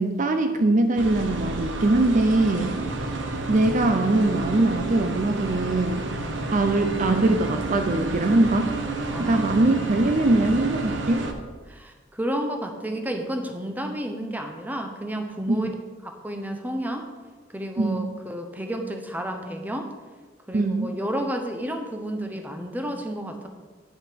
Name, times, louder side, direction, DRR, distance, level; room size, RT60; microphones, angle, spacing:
voice 1, 0.0-2.8 3.5-6.0 6.5-8.7 9.2-11.3 15.5-15.7 17.8-18.1 20.5-20.9, right 2 dB, 45° right, 7 dB, 0.5 m, -22 dB
sound 1, 1.0-11.3, right 2 dB, 70° right, 1.0 m, -30 dB
voice 2, 9.1-9.4 11.7-15.7 16.0-17.1 17.5-19.9 20.5-23.5, equal, 10° right, 4 dB, 0.8 m, -31 dB
9.6 x 6.0 x 5.2 m, 1.4 s
head